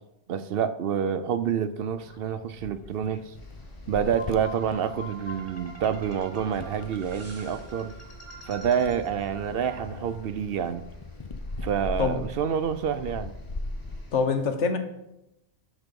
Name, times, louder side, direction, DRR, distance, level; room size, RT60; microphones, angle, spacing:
voice 1, 0.3-3.3 3.9-7.9 8.5-10.8 11.6-13.3, right 8 dB, 60° right, 0.7 m, -28 dB
sound 1, 1.8-14.0, left 2 dB, 40° left, 0.4 m, -41 dB
sound 2, 3.4-14.2, equal, 20° left, 1.4 m, -49 dB
sound 3, 4.2-10.3, equal, 15° right, 1.2 m, -45 dB
voice 2, 14.1-14.8, left 5 dB, 80° left, 1.2 m, -25 dB
11.5 x 4.1 x 5.2 m
omnidirectional pair, 1.2 m